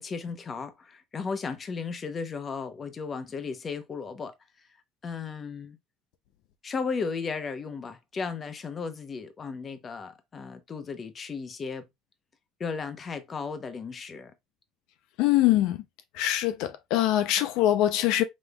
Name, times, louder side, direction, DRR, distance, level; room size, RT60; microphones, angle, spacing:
voice 1, 0.0-4.3 5.0-5.8 6.6-11.9 12.6-14.3, left 5 dB, 30° left, 0.8 m, -35 dB
voice 2, 15.2-15.8 16.1-18.2, left 13 dB, 70° left, 0.5 m, -23 dB
5.2 x 3.5 x 2.3 m
cardioid pair, 135°, 0 cm